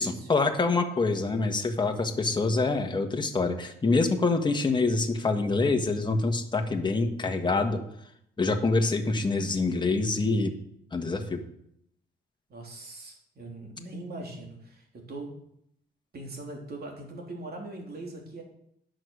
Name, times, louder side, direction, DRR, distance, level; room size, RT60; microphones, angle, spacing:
voice 1, 0.0-7.8 8.4-10.5 10.9-11.4, left 3 dB, 25° left, 4 dB, 1.4 m, -26 dB
voice 2, 12.5-15.3 16.1-18.4, right 2 dB, 50° right, 0 dB, 3.4 m, -41 dB
10.5 x 6.4 x 6.4 m, 0.73 s
cardioid pair, 90°, 20 cm